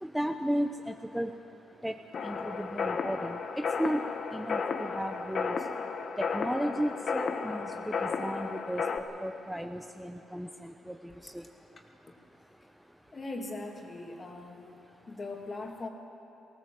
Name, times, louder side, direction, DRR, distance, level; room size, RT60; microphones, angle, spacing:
voice 1, 0.0-1.3 1.8-2.0 2.2-4.0 4.3-5.6 6.2-8.9 9.2-11.0 11.2-11.4, equal, 5° right, 6 dB, 0.7 m, -34 dB
sound 1, 2.1-9.0, left 5 dB, 50° left, 1.2 m, -33 dB
voice 2, 13.1-14.7 15.1-15.9, left 2 dB, 35° left, 2 dB, 2.6 m, -40 dB
20.0 x 17.5 x 7.8 m, 3.0 s
cardioid pair, 90°, 0 cm